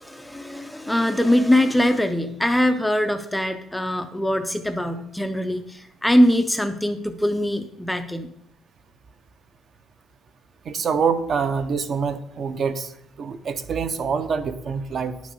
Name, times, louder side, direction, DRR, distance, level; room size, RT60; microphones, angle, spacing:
voice 1, 0.0-8.3, left 1 dB, 5° left, 7 dB, 0.4 m, -22 dB
voice 2, 10.7-12.9 13.2-15.2, right 6 dB, 35° right, 11 dB, 0.6 m, -25 dB
10.5 x 6.2 x 5.5 m, 0.74 s
cardioid pair, 175°, 0 cm